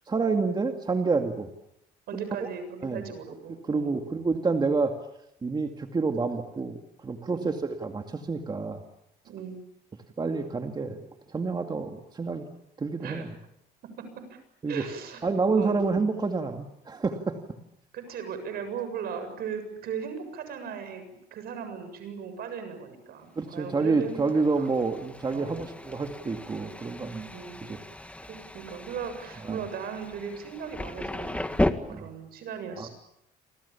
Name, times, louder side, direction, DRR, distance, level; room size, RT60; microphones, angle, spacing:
voice 1, 0.1-1.5 2.4-2.5 2.8-3.0 3.6-4.9 5.4-8.8 10.2-11.0 11.3-12.4 12.8-13.3 14.6-14.9 15.2-17.4 23.4-27.3 27.6-27.8 29.4-29.6 31.9-32.1 32.8-32.9, right 4 dB, 25° right, 4 dB, 2.4 m, -28 dB
voice 2, 2.1-4.0 7.3-7.5 9.2-9.6 13.0-13.3 14.3-14.4 14.7-15.3 15.6-15.8 17.9-24.7 25.3-25.7 27.3-27.6 28.3-31.6 31.9-32.9, right 7 dB, 65° right, 9 dB, 7.5 m, -37 dB
Thunder, 23.6-31.7, left 1 dB, 10° left, 1.9 m, -35 dB
29.5 x 25.0 x 7.2 m, 0.78 s
cardioid pair, 110°, 17 cm